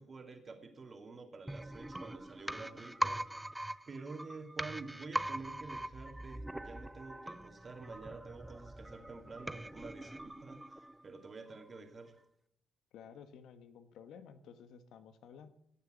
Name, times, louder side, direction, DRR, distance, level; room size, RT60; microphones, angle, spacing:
voice 1, 0.0-3.2 3.9-12.2, right 4 dB, 35° right, 5 dB, 2.6 m, -49 dB
sound 1, 1.5-11.2 11.5-11.6, right 1 dB, 10° right, 0.5 m, -42 dB
voice 2, 12.9-15.5, left 7 dB, 80° left, 10 dB, 1.3 m, -53 dB
17.0 x 7.0 x 6.3 m, 0.77 s
cardioid pair, 90°, 0 cm